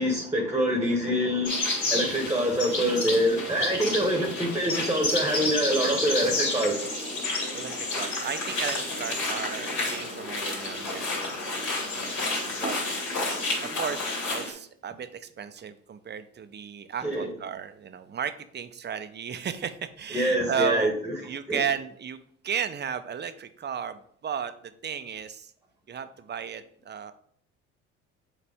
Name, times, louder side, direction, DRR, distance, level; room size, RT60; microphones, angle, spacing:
voice 1, 0.0-1.6 1.9-6.9 17.0-17.3 20.1-21.2 21.5-21.6, equal, 10° right, 2 dB, 1.3 m, -25 dB
sound 1, 1.4-14.5, left 2 dB, 55° left, 2.5 m, -30 dB
voice 2, 1.8-2.2 7.5-12.8 13.6-22.2 22.4-25.5 25.9-27.1, right 7 dB, 30° right, 10 dB, 0.6 m, -34 dB
7.0 x 4.0 x 3.5 m, 0.62 s
hypercardioid pair, 65°, 33 cm